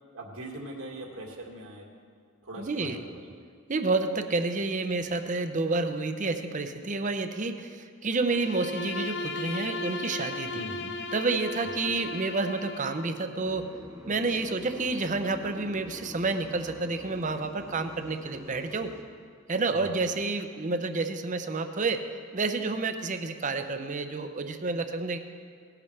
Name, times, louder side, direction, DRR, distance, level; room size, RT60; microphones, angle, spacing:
voice 1, 0.1-1.9 2.4-3.3 10.5-10.9 11.8-12.0 19.7-20.0, right 1 dB, 80° right, 0 dB, 1.9 m, -41 dB
voice 2, 2.6-3.0 3.7-10.6 11.1-13.7 14.1-18.9 19.5-22.1 22.3-25.2, right 3 dB, 35° right, 8 dB, 0.6 m, -29 dB
Bowed string instrument, 8.2-13.1, left 3 dB, 55° left, 0.6 m, -36 dB
sound 1, 13.3-19.0, left 2 dB, 15° right, 1.1 m, -45 dB
18.0 x 10.5 x 3.3 m, 2.1 s
head